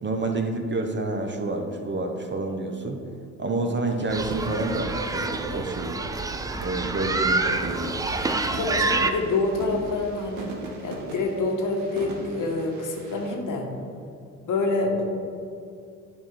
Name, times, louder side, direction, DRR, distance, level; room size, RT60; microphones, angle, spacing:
voice 1, 0.0-3.0 3.4-6.0 6.6-8.0, right 2 dB, 25° right, 4 dB, 0.8 m, -28 dB
sound 1, 3.8-7.1 7.5-13.4, right 2 dB, 70° right, 1.1 m, -40 dB
sound 2, 4.1-9.1, right 3 dB, 10° right, 0.3 m, -27 dB
voice 2, 8.5-10.5 10.8-13.7 14.4-15.1, left 3 dB, 50° left, 1 dB, 1.3 m, -27 dB
10.5 x 4.9 x 3.7 m, 2.5 s
figure-of-eight pair, 50°, 41 cm